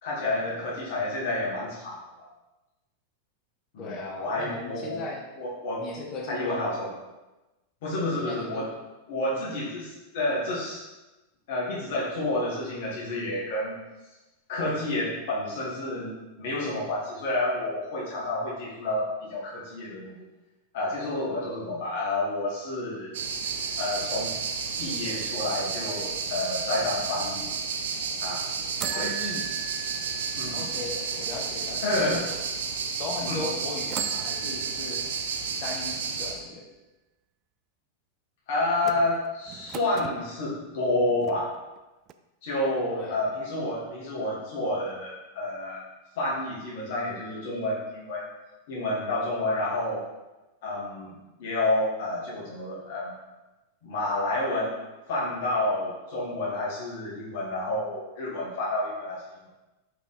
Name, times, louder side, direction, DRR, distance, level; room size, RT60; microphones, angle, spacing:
voice 1, 0.0-2.3 3.7-5.0 5.4-5.8 6.3-6.9 7.8-8.7 9.1-10.8 11.5-13.8 14.5-20.3 20.7-23.1 23.8-24.3 24.8-27.5 28.2-28.4 28.9-29.1 30.4-30.7 31.8-32.2 33.3-33.4 38.5-41.5 42.4-45.8 46.2-48.3 48.7-50.0 50.6-51.1 51.4-53.1 53.8-54.7 55.1-59.5, left 2 dB, 55° left, -6 dB, 1.9 m, -29 dB
voice 2, 3.8-5.2 5.8-6.6 8.1-8.7 28.9-29.4 30.5-32.3 33.0-35.0 35.6-36.6 42.9-43.2, left 3 dB, 35° left, -1 dB, 1.6 m, -37 dB
sound 1, 23.1-36.3, right 5 dB, 60° right, 0.9 m, -32 dB
sound 2, 23.4-25.2 28.8-31.9 32.5-32.6 33.8-35.6 38.8-40.2 40.9-41.8 42.1-42.2, right 11 dB, 35° right, 0.4 m, -39 dB
5.8 x 4.7 x 4.3 m, 1.1 s
figure-of-eight pair, 90°, 0 cm